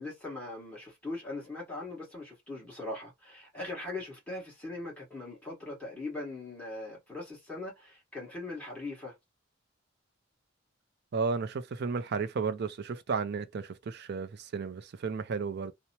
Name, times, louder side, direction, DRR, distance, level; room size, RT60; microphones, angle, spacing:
voice 1, 0.0-9.1, left 2 dB, 5° left, 1.3 m, -40 dB
voice 2, 11.1-15.7, right 5 dB, 55° right, 0.4 m, -33 dB
2.8 x 2.1 x 2.8 m
head